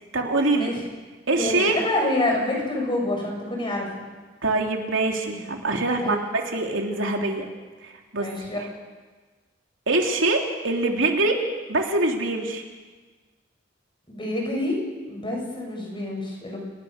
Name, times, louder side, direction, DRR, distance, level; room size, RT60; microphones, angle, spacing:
voice 1, 0.1-0.7 1.3-1.8 4.4-7.5 7.8-8.3 8.6-8.7 9.9-11.4 11.7-12.6, right 2 dB, 80° right, 2 dB, 3.1 m, -24 dB
voice 2, 1.4-4.0 6.0-6.2 8.2-8.6 14.1-14.8 15.1-16.6, left 1 dB, 25° left, 0 dB, 6.9 m, -27 dB
29.0 x 19.5 x 6.7 m, 1.3 s
head